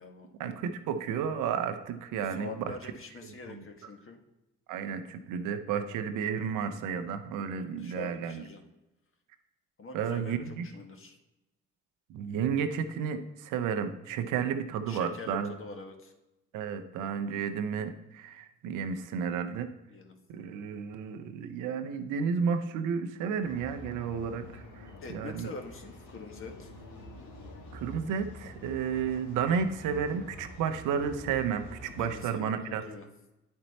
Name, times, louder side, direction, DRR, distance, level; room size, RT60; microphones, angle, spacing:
voice 1, 0.4-2.5 3.5-3.6 4.7-8.4 9.9-10.6 12.1-15.5 16.5-19.7 20.3-24.8 25.1-25.5 27.7-32.8, right 7 dB, 80° right, 8 dB, 0.7 m, -32 dB
voice 2, 2.4-4.2 6.4-6.5 7.5-8.6 9.8-11.2 14.9-16.1 19.9-20.2 25.0-26.7 32.0-33.1, left 3 dB, 45° left, 4 dB, 1.6 m, -44 dB
sound 1, 23.4-32.2, left 2 dB, 70° left, 1.6 m, -47 dB
9.6 x 4.3 x 4.1 m, 0.98 s
supercardioid pair, 55°, 30 cm